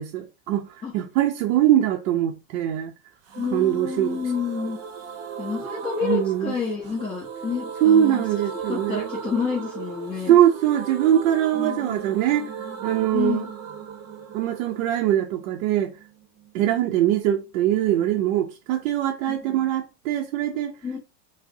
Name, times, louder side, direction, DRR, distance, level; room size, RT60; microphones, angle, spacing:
voice 1, 0.0-0.7 0.9-2.9 3.5-4.2 6.0-6.5 7.8-9.1 10.3-12.5 12.8-13.4 14.3-15.9 16.5-20.7, right 11 dB, 80° right, 0.6 m, -22 dB
sound 1, 3.3-16.9 17.1-17.2 17.5-17.6, right 6 dB, 40° right, 0.8 m, -37 dB
voice 2, 3.4-4.8 5.4-8.2 8.5-10.4 11.5-12.0 13.1-13.5 19.3-19.6 20.8-21.0, left 5 dB, 15° left, 0.8 m, -29 dB
4.7 x 2.1 x 2.7 m
supercardioid pair, 150°, 41 cm